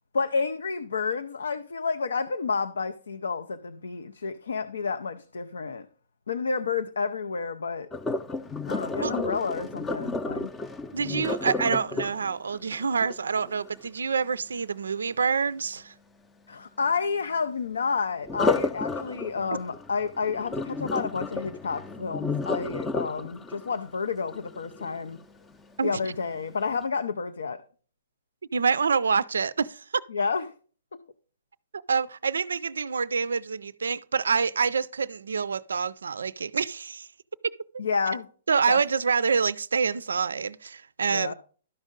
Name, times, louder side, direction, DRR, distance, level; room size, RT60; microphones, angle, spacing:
voice 1, 0.1-5.9 6.3-7.9 8.7-10.5 16.5-25.2 25.8-27.6 30.1-30.5 30.9-31.0 37.8-38.3 38.7-38.8 41.1-41.3, left 5 dB, 85° left, 0.5 m, -30 dB
Sink (filling or washing), 7.9-13.9 18.2-25.3 25.8-26.1 26.6-26.7, left 3 dB, 15° left, 0.5 m, -32 dB
voice 2, 10.9-15.9 25.8-26.1 28.5-30.0 31.9-37.1 37.4-37.6 38.5-41.3, right 5 dB, 85° right, 0.3 m, -27 dB
12.0 x 5.3 x 3.8 m
hypercardioid pair, 130°, 0 cm